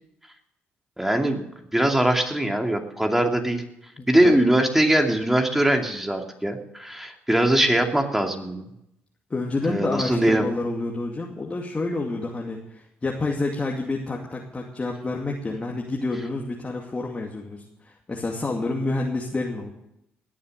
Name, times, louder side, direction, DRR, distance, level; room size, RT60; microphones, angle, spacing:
voice 1, 1.0-1.4 1.7-3.6 4.1-8.7 9.7-10.5, right 1 dB, 5° right, 3 dB, 2.6 m, -21 dB
voice 2, 4.0-4.4 9.3-19.7, left 2 dB, 30° left, -1 dB, 2.4 m, -29 dB
20.0 x 7.2 x 6.7 m, 0.81 s
supercardioid pair, 60°, 5 cm